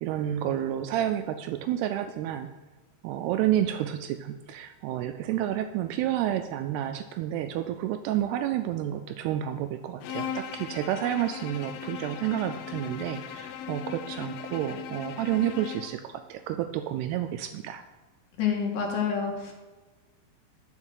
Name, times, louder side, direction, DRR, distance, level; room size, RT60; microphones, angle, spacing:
voice 1, 0.0-2.5 3.0-17.8, right 11 dB, 85° right, 8 dB, 2.3 m, -30 dB
Bowed string instrument, 10.0-16.0, left 8 dB, 80° left, 2.3 m, -38 dB
voice 2, 18.4-19.5, left 7 dB, 60° left, 0 dB, 2.8 m, -28 dB
7.2 x 6.6 x 8.0 m, 1.3 s
omnidirectional pair, 5.0 m